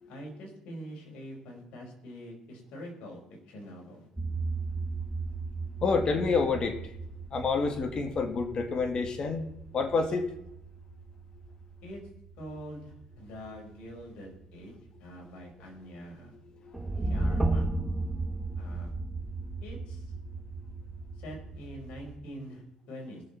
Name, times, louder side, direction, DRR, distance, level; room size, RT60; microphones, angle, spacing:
voice 1, 0.1-4.1 11.8-12.0 12.4-16.4 17.0-17.7 18.5-18.9 19.6-20.1 21.2-23.2, equal, 75° left, 0 dB, 4.8 m, -45 dB
sound 1, 4.2-22.1, right 2 dB, 10° right, 2.0 m, -36 dB
voice 2, 5.8-6.8 7.3-9.4 9.7-10.3 16.6-17.2, left 4 dB, 45° left, 5 dB, 2.3 m, -28 dB
21.5 x 7.1 x 4.4 m, 0.81 s
cardioid pair, 95°, 2 cm